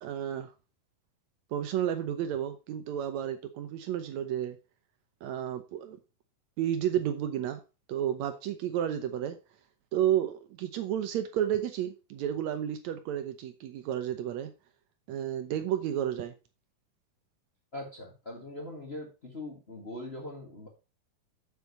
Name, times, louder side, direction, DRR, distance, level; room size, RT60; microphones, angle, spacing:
voice 1, 0.0-0.5 1.5-4.6 5.2-6.0 6.6-7.6 7.9-9.4 9.9-14.5 15.1-16.3, right 10 dB, 80° right, 1.6 m, -31 dB
voice 2, 17.7-20.7, left 1 dB, 30° left, 1.2 m, -41 dB
7.5 x 7.3 x 4.2 m
omnidirectional pair, 4.1 m